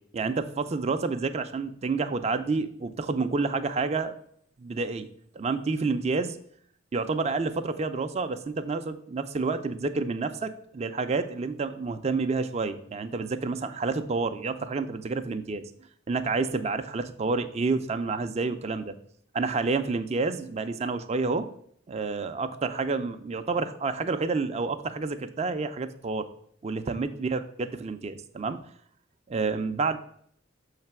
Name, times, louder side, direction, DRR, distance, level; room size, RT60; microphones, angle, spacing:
voice 1, 0.1-4.2 4.6-5.1 5.3-6.4 6.9-15.6 16.1-18.9 19.3-21.5 21.9-26.3 26.6-28.6 29.3-30.0, right 4 dB, 35° right, 9 dB, 0.4 m, -29 dB
6.6 x 3.2 x 5.8 m, 0.63 s
head